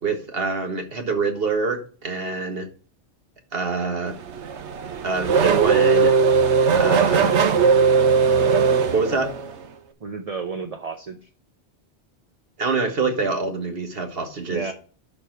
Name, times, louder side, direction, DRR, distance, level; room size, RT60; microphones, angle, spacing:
voice 1, 0.0-2.7 3.5-4.1 5.0-6.1 6.8-7.3 8.9-9.3 12.6-14.7, right 4 dB, 60° right, 1.7 m, -25 dB
Race car auto racing / Accelerating revving vroom, 4.1-9.7, right 5 dB, 80° right, 1.2 m, -19 dB
voice 2, 6.8-7.4 10.0-11.3 14.5-14.7, right 5 dB, 40° right, 0.7 m, -32 dB
11.5 x 4.5 x 4.5 m
omnidirectional pair, 1.2 m